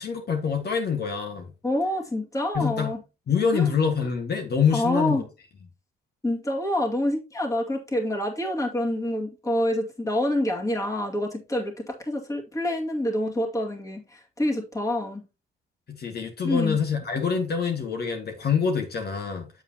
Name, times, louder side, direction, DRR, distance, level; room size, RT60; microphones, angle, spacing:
voice 1, 0.0-1.5 2.5-2.9 3.3-5.2 15.9-19.5, left 6 dB, 55° left, 1.9 m, -25 dB
voice 2, 1.6-3.0 3.5-3.7 4.7-5.3 6.2-15.2 16.4-16.8, left 1 dB, 15° left, 2.2 m, -27 dB
8.0 x 7.5 x 2.9 m
cardioid pair, 90°, 20 cm